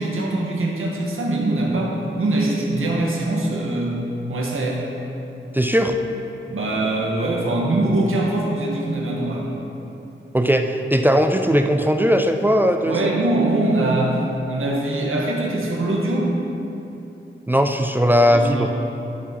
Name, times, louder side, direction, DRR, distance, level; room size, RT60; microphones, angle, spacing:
voice 1, 0.0-4.0 4.3-4.9 6.5-9.5 12.9-16.3 18.3-18.7, right 2 dB, 85° right, -2 dB, 1.5 m, -22 dB
voice 2, 5.5-6.0 10.3-13.0 17.5-18.7, equal, 10° right, 5 dB, 0.4 m, -18 dB
12.0 x 6.2 x 4.5 m, 2.9 s
wide cardioid pair, 140°, 21 cm